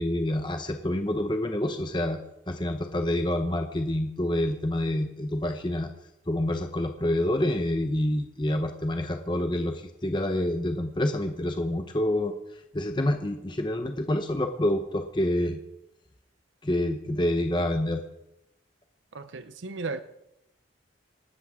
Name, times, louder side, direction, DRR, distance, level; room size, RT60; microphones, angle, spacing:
voice 1, 0.0-2.2 2.5-5.9 6.3-15.6 16.6-18.0, left 1 dB, 25° left, 5 dB, 0.8 m, -27 dB
voice 2, 19.1-20.0, right 3 dB, 80° right, 11 dB, 0.7 m, -35 dB
25.5 x 12.5 x 3.7 m, 0.89 s
head